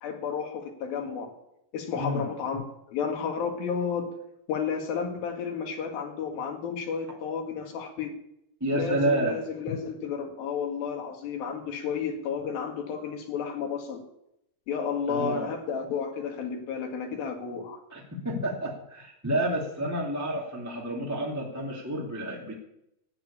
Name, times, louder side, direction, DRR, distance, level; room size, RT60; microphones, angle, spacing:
voice 1, 0.0-1.3 1.7-4.1 4.5-8.2 8.7-14.0 14.7-17.8, left 6 dB, 80° left, 4 dB, 3.7 m, -32 dB
voice 2, 8.6-9.4 15.1-15.5 17.9-22.5, right 1 dB, 5° right, -2 dB, 1.9 m, -29 dB
12.5 x 9.2 x 8.6 m, 0.82 s
omnidirectional pair, 4.2 m